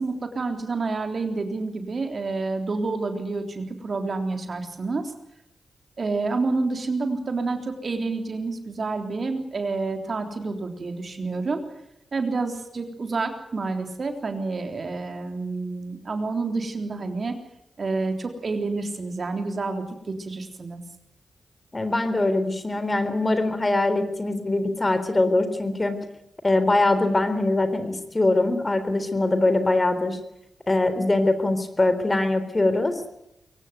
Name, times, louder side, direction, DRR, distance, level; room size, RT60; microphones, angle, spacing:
voice 1, 0.0-5.1 6.0-11.6 12.1-17.3 17.8-20.8, right 3 dB, 55° right, 5 dB, 3.7 m, -28 dB
voice 2, 21.7-26.0 26.4-30.2 30.7-32.9, left 2 dB, 30° left, 10 dB, 3.8 m, -22 dB
23.0 x 17.5 x 9.5 m, 0.84 s
supercardioid pair, 40°, 0 cm